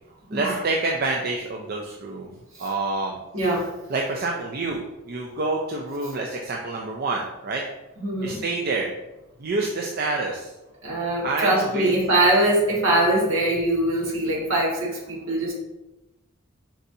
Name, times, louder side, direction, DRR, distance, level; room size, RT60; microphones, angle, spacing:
voice 1, 0.3-2.3 2.6-3.2 3.9-7.6 8.2-8.9 9.4-10.5 11.2-11.9, right 3 dB, 45° right, 0 dB, 0.4 m, -27 dB
voice 2, 3.3-3.7 8.0-8.4 10.8-15.5, right 1 dB, 70° right, -4 dB, 1.5 m, -22 dB
4.5 x 4.0 x 2.6 m, 0.98 s
head